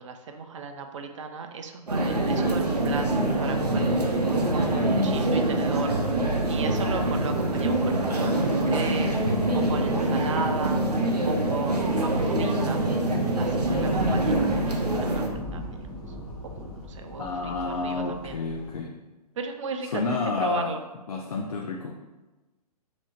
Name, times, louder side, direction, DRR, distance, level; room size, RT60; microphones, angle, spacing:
voice 1, 0.0-4.2 4.5-9.1 9.5-10.8 11.2-12.8 13.4-15.9 16.6-18.4 19.4-20.8, right 5 dB, 50° right, 6 dB, 0.5 m, -36 dB
sound 1, 1.9-15.3, right 1 dB, 85° right, 0.7 m, -25 dB
Thunder, 13.4-18.8, left 1 dB, 20° left, 0.8 m, -37 dB
voice 2, 17.2-19.0 19.8-20.8 21.1-21.9, left 4 dB, 65° left, 2 dB, 0.4 m, -30 dB
3.4 x 2.9 x 4.0 m, 1.1 s
figure-of-eight pair, 120°, 20 cm